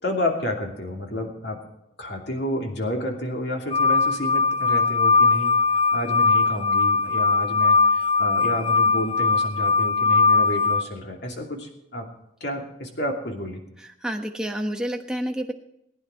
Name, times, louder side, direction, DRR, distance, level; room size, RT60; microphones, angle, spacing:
voice 1, 0.0-1.6 2.0-12.1 12.4-13.6, left 1 dB, 55° left, 2 dB, 2.7 m, -30 dB
sound 1, 3.7-10.8, left 4 dB, 25° left, 0.5 m, -20 dB
voice 2, 13.8-15.5, equal, 5° right, 3 dB, 1.1 m, -29 dB
19.5 x 9.8 x 4.5 m, 0.81 s
head